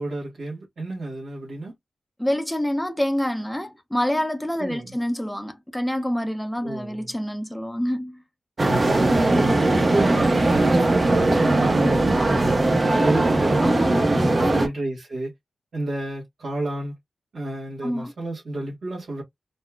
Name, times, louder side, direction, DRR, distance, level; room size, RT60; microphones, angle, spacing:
voice 1, 0.0-1.7 4.6-5.0 6.6-7.1 8.7-12.6 13.0-15.3 15.7-16.9 17.3-19.2, right 2 dB, 75° right, 1.6 m, -30 dB
voice 2, 2.2-8.2 13.6-14.1 14.4-14.7 17.8-18.1, equal, 5° left, 0.7 m, -27 dB
sound 1, 8.6-14.7, right 2 dB, 40° right, 0.8 m, -20 dB
4.2 x 2.2 x 2.3 m
cardioid pair, 65°, 0 cm